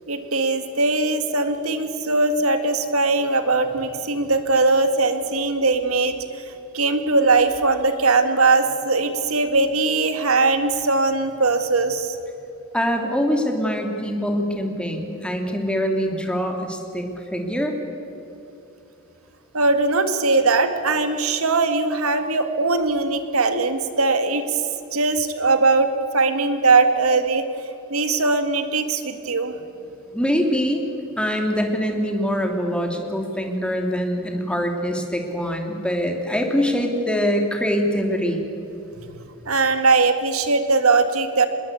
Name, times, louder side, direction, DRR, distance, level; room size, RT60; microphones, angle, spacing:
voice 1, 0.1-6.1 6.5-12.2 19.5-24.6 24.9-27.5 27.9-29.5 39.5-41.5, right 3 dB, 90° right, 8 dB, 1.9 m, -20 dB
voice 2, 12.7-17.8 30.1-30.8 31.2-38.5, equal, 5° left, 3 dB, 2.8 m, -24 dB
26.0 x 21.0 x 8.5 m, 2.9 s
head